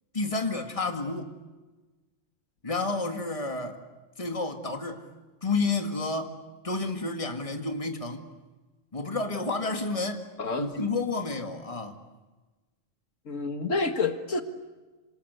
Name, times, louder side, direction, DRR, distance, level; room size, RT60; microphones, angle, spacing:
voice 1, 0.1-1.3 2.6-3.8 4.2-5.0 5.4-6.4 6.6-8.2 8.9-10.2 10.6-12.0, left 3 dB, 25° left, 5 dB, 2.2 m, -30 dB
voice 2, 10.4-10.7 13.3-14.4, left 3 dB, 90° left, 7 dB, 2.2 m, -28 dB
27.0 x 27.0 x 8.1 m, 1.2 s
omnidirectional pair, 1.3 m